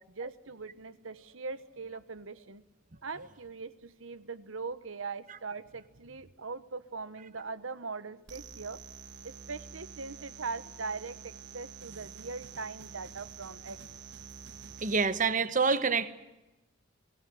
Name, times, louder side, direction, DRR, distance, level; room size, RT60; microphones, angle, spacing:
voice 1, 0.0-2.6 3.0-8.8 9.2-13.8, right 4 dB, 90° right, 15 dB, 1.2 m, -41 dB
sound 1, 8.3-15.1, right 6 dB, 60° right, 1.4 m, -48 dB
voice 2, 14.8-16.1, right 5 dB, 40° right, 13 dB, 1.2 m, -27 dB
24.0 x 16.5 x 9.4 m, 1.0 s
head